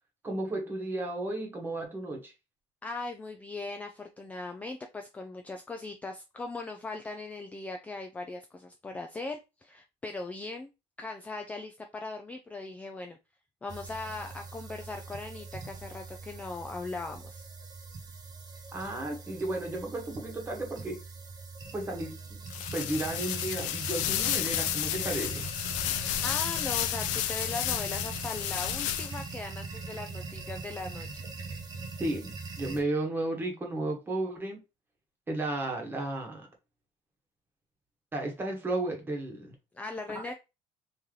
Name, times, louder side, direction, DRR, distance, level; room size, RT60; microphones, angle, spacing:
voice 1, 0.2-2.3 18.7-21.0 21.7-22.4 22.7-25.5 32.0-34.6 35.3-36.5 38.1-39.5 40.1-40.3, right 2 dB, 15° right, 1.2 m, -33 dB
voice 2, 2.8-10.7 11.0-13.2 13.6-17.4 26.2-31.2 39.7-40.3, left 3 dB, 10° left, 0.3 m, -39 dB
sound 1, 13.7-32.8, right 4 dB, 30° right, 0.9 m, -42 dB
sound 2, 22.5-29.4, left 13 dB, 75° left, 0.4 m, -32 dB
3.2 x 2.8 x 3.7 m
cardioid pair, 145°, 13 cm